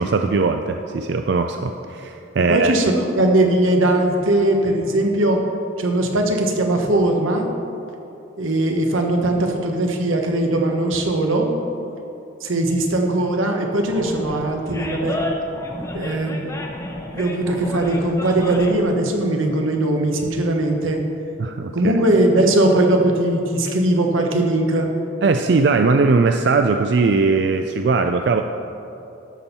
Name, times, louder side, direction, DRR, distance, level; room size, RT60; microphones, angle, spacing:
voice 1, 0.0-2.7 21.4-21.9 25.2-28.4, right 4 dB, 60° right, 6 dB, 0.4 m, -19 dB
voice 2, 2.5-5.4 5.8-7.5 8.4-11.5 12.4-15.2 15.9-16.6 17.1-21.0 21.7-24.9, right 1 dB, 90° right, 3 dB, 1.2 m, -19 dB
Animal, 13.8-18.9, left 1 dB, 15° left, 0.8 m, -30 dB
13.0 x 4.4 x 6.8 m, 2.8 s
head